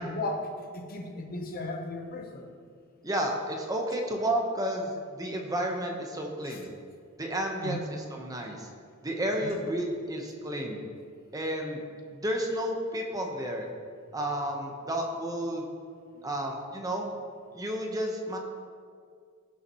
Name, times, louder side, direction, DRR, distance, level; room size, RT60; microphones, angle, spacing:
voice 1, 0.0-2.5 6.4-6.6 7.6-7.8 9.4-9.6, left 1 dB, 45° left, 3 dB, 1.1 m, -36 dB
voice 2, 3.0-4.9 5.2-6.7 7.2-8.7 9.0-10.8 11.3-11.8 12.1-13.7 14.1-15.6 16.2-17.1 17.5-18.4, right 1 dB, 15° right, 1 dB, 1.1 m, -31 dB
17.0 x 7.0 x 3.1 m, 2.1 s
head